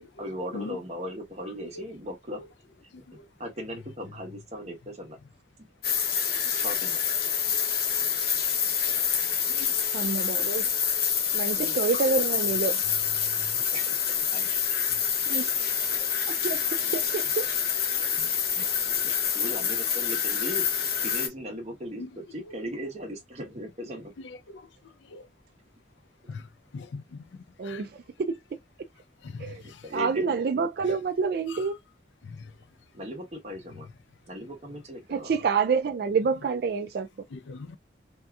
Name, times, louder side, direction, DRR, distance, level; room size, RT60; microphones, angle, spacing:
voice 1, 0.2-2.4 3.0-3.1 3.4-5.2 6.5-7.0 11.6-11.8 13.6-14.0 14.3-14.6 16.8-17.0 18.2-18.3 18.6-20.7 21.0-24.1 29.5-30.4 32.9-33.9 34.2-35.4, equal, 35° right, 1.1 m, -38 dB
sound 1, 5.8-21.3, left 7 dB, 55° left, 0.7 m, -27 dB
voice 2, 9.9-10.7 11.3-12.8 15.3-15.7 16.3-16.6 16.9-17.5 27.6-28.4 29.4-29.6 29.9-31.8 35.1-37.1, right 5 dB, 55° right, 0.3 m, -27 dB
voice 3, 26.7-27.2 27.6-27.8 29.2-29.8 32.4-32.5 37.3-37.8, left 3 dB, 75° left, 0.4 m, -40 dB
3.5 x 2.7 x 2.3 m
head